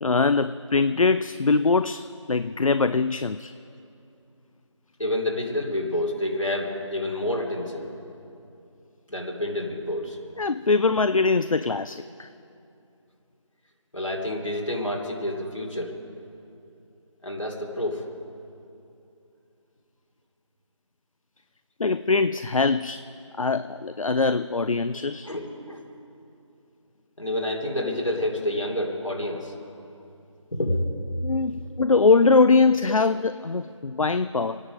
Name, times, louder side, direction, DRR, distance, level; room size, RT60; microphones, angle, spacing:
voice 1, 0.0-3.5 10.4-12.3 21.8-23.0 23.4-25.3 31.2-34.6, left 4 dB, 85° left, 13 dB, 0.4 m, -22 dB
voice 2, 5.0-7.9 9.1-10.2 13.9-15.9 17.2-18.1 25.2-25.8 27.2-29.5 30.5-30.9 31.6-31.7, left 1 dB, 70° left, -1 dB, 3.0 m, -28 dB
26.0 x 9.9 x 5.2 m, 2.7 s
figure-of-eight pair, 170°, 17 cm